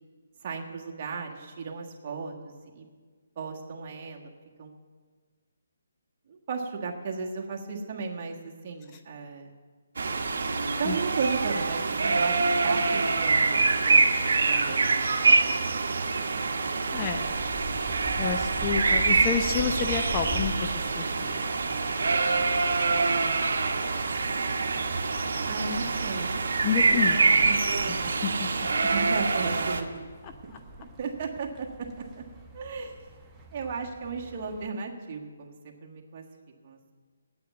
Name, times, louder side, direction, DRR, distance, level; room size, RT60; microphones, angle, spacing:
voice 1, 0.4-2.9 3.4-4.2 4.6-4.7 6.3-9.5 10.8-13.4 13.8-15.8 25.4-26.3 27.4-27.6 28.9-30.1 30.4-30.5 30.8-31.7 32.2-32.3 32.5-32.9 33.5-36.2 36.6-36.9, right 4 dB, 40° right, 0 dB, 1.5 m, -35 dB
sound 1, 10.0-29.8, right 4 dB, 65° right, 1.1 m, -25 dB
voice 2, 16.9-17.3 18.2-20.7 20.9-21.4 26.6-27.4 27.9-28.5 30.2-30.3, left 7 dB, 25° left, 5 dB, 0.7 m, -30 dB
sound 2, 17.0-34.7, right 2 dB, 10° right, 1.0 m, -43 dB
8.5 x 8.2 x 9.1 m, 1.5 s
figure-of-eight pair, 150°, 0 cm